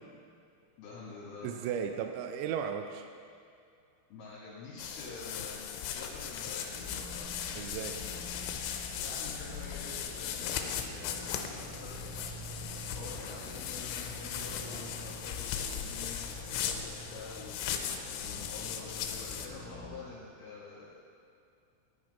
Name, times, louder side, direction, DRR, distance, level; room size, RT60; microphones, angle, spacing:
voice 1, 0.8-1.5 4.1-7.4 8.9-12.0 12.6-20.9, left 3 dB, 60° left, -9 dB, 3.7 m, -47 dB
voice 2, 1.4-3.1 7.5-8.0, right 8 dB, 85° right, 6 dB, 2.8 m, -35 dB
sound 1, 4.8-19.5, left 8 dB, 80° left, 3.1 m, -38 dB
sound 2, 6.7-20.0, equal, 5° left, 2.2 m, -47 dB
10.5 x 9.8 x 5.5 m, 2.4 s
omnidirectional pair, 5.5 m